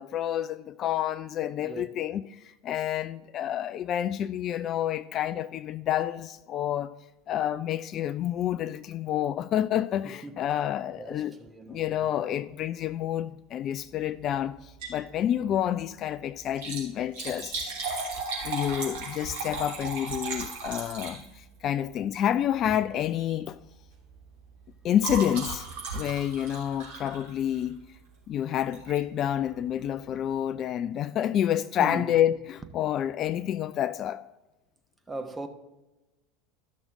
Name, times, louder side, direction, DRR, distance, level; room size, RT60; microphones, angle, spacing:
voice 1, 0.0-6.9 7.3-11.3 11.7-17.6 18.4-23.6 24.8-25.7 25.9-27.8 28.3-34.2, left 11 dB, 40° left, 0.3 m, -29 dB
voice 2, 10.0-10.5 11.0-12.4 17.0-17.3 25.9-26.3 31.8-32.2 35.1-35.5, right 2 dB, 15° right, 1.1 m, -40 dB
Liquid, 14.6-15.1 15.4-15.5 16.4-21.6 22.5-22.8 23.2-23.4 23.7-27.8 28.7-29.0 29.5-29.6 29.8-29.9, right 3 dB, 65° right, 3.1 m, -36 dB
13.0 x 6.3 x 3.7 m
figure-of-eight pair, 75°, 0 cm